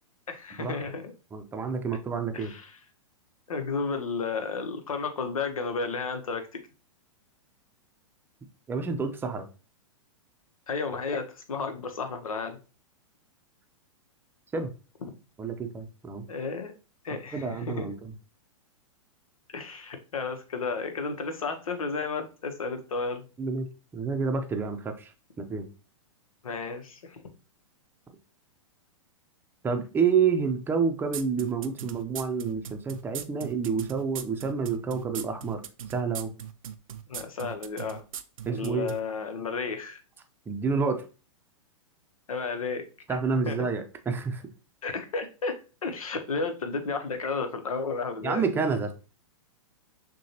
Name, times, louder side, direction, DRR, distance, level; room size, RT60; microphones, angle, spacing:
voice 1, 0.3-1.1 2.3-2.7 3.5-6.6 10.7-12.6 16.3-16.7 17.0-18.0 19.5-23.2 26.4-27.2 37.1-38.0 38.5-40.0 42.3-43.2 43.5-43.7 44.8-48.5, left 4 dB, 85° left, 7 dB, 0.9 m, -32 dB
voice 2, 1.3-2.5 8.7-9.5 14.5-14.7 15.4-16.3 17.3-18.1 23.4-23.7 23.9-25.1 25.4-25.7 29.6-35.6 35.9-36.3 38.4-38.9 40.5-41.0 43.1-44.4 48.2-48.9, right 5 dB, 10° right, 6 dB, 0.6 m, -28 dB
sound 1, 31.1-39.0, right 9 dB, 80° right, 0.5 m, -38 dB
6.3 x 2.3 x 2.8 m, 0.34 s
hypercardioid pair, 120°, 17 cm